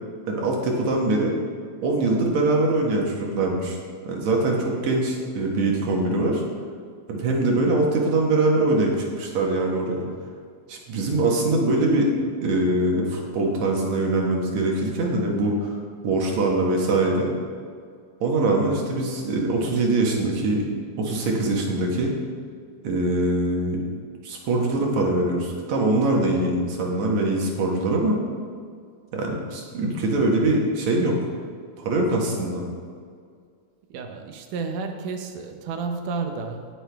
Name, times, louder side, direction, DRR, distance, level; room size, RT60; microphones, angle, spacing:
voice 1, 0.3-1.3 1.8-3.8 4.1-6.4 7.1-10.1 10.7-12.1 12.4-17.3 18.2-20.7 21.0-22.1 22.8-23.8 24.2-28.2 29.1-31.2 31.8-32.6, right 2 dB, 65° right, -1 dB, 2.7 m, -23 dB
voice 2, 33.9-36.7, right 4 dB, 90° right, 5 dB, 2.5 m, -31 dB
18.0 x 6.8 x 3.5 m, 2.1 s
omnidirectional pair, 3.5 m